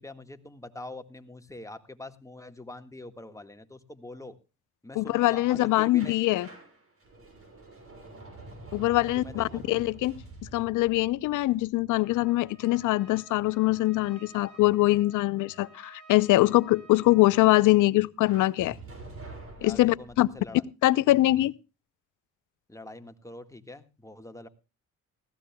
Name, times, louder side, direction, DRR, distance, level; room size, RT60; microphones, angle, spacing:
voice 1, 0.0-4.3 4.8-6.2 8.9-9.6 19.6-20.6 21.4-21.5 22.7-24.5, left 2 dB, 10° left, 1.7 m, -44 dB
voice 2, 4.9-6.5 8.7-10.1 10.5-18.8 19.6-20.3 20.8-21.5, left 17 dB, 85° left, 0.7 m, -23 dB
sound 1, 6.0-12.7 18.2-20.5, right 2 dB, 45° right, 6.7 m, -47 dB
Trumpet, 12.0-17.9, right 5 dB, 75° right, 6.1 m, -54 dB
19.5 x 16.0 x 2.3 m
cardioid pair, 90°, 30 cm